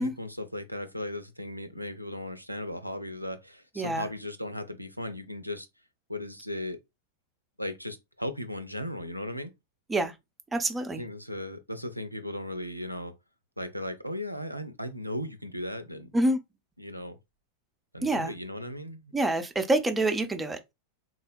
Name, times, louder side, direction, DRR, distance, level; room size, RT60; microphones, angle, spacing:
voice 1, 0.0-5.7 6.1-6.8 7.6-9.5 11.0-13.1 13.6-16.1 16.8-17.2 17.9-19.1, left 1 dB, 90° right, 0.4 m, -36 dB
voice 2, 3.8-4.1 9.9-10.1 10.5-11.0 16.1-16.4 18.0-18.3 19.1-20.7, right 1 dB, 10° right, 0.5 m, -27 dB
3.8 x 2.1 x 2.4 m
figure-of-eight pair, 90°, 0 cm